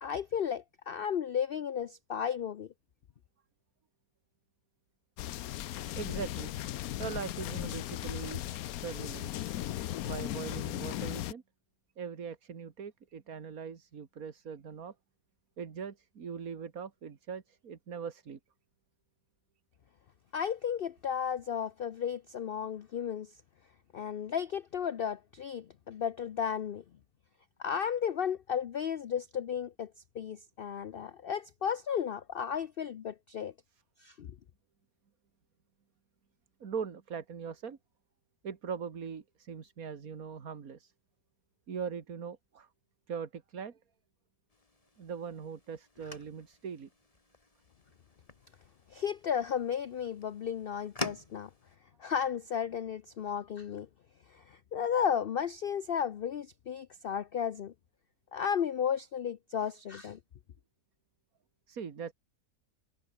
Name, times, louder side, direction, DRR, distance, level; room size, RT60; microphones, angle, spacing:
voice 1, 0.0-2.7 20.3-23.3 23.9-26.8 27.6-33.5 34.0-34.4 48.9-51.5 52.0-53.9 54.3-57.7 58.3-60.2, left 8 dB, 60° left, 0.6 m, -34 dB
sound 1, 5.2-11.3, left 14 dB, 75° left, 1.1 m, -37 dB
voice 2, 6.0-6.5 7.0-9.4 10.0-11.4 12.0-14.9 15.6-18.4 36.6-37.8 38.4-40.9 41.7-42.7 43.1-43.8 45.0-46.9 59.6-59.7 61.7-62.1, right 6 dB, 70° right, 2.1 m, -41 dB
sound 2, 44.5-51.8, left 2 dB, 25° left, 2.0 m, -46 dB
omnidirectional pair, 1.6 m